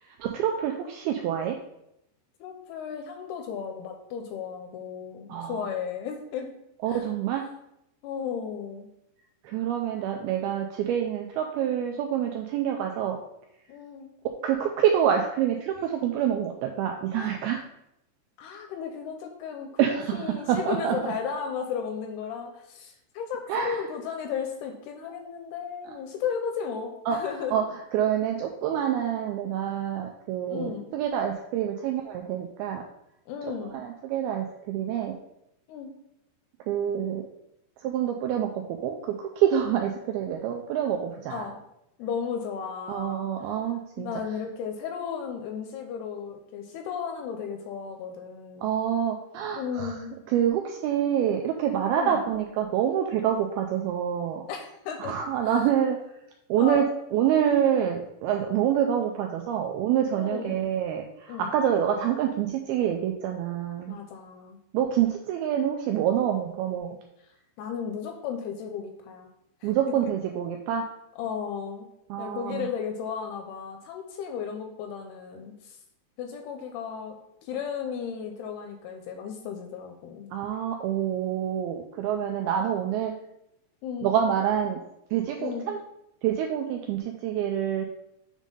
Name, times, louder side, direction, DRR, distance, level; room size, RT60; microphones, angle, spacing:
voice 1, 0.2-1.6 5.3-5.7 6.8-7.5 9.4-13.2 14.4-17.6 19.8-20.2 20.5-21.1 23.5-23.8 27.1-27.2 27.5-27.6 27.9-32.8 33.7-35.2 36.7-37.2 37.8-41.5 42.9-44.1 48.6-49.9 50.3-54.4 55.0-56.0 56.5-56.9 57.1-64.0 64.7-66.9 69.6-70.8 72.1-72.7 80.3-83.1 84.0-84.8 85.1-85.8 86.2-87.9, right 9 dB, 85° right, 3 dB, 2.2 m, -27 dB
voice 2, 2.4-6.5 6.9-7.1 8.0-8.9 10.1-10.2 13.7-14.1 17.1-17.4 18.4-19.9 20.1-27.6 30.5-30.9 33.3-33.8 35.7-36.0 39.8-39.9 41.3-41.6 42.0-43.3 44.0-48.7 49.6-50.2 52.0-52.3 54.5-55.2 55.4-55.7 56.6-56.9 60.1-60.7 61.3-61.5 63.9-64.6 67.6-69.3 69.6-70.1 71.2-71.9 72.2-75.8 76.2-77.2 77.4-80.3 83.8-84.2 85.4-85.7, left 7 dB, 80° left, 4 dB, 2.4 m, -34 dB
7.3 x 3.8 x 5.3 m, 0.81 s
omnidirectional pair, 4.9 m